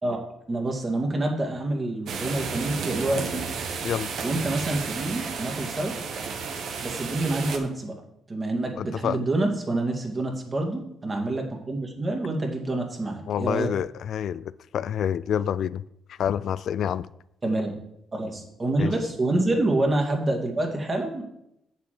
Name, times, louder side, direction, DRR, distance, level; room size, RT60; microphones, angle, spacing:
voice 1, 0.5-3.4 4.2-5.9 6.8-7.9 8.3-13.7 17.4-17.8 18.1-21.2, right 2 dB, 30° right, 2.3 m, -27 dB
sound 1, 2.1-7.6, right 5 dB, 70° right, 1.3 m, -32 dB
voice 2, 8.8-9.2 13.3-15.8 16.1-17.1 18.8-18.9, left 9 dB, 70° left, 0.3 m, -28 dB
8.6 x 6.9 x 5.0 m
cardioid pair, 90°, 0 cm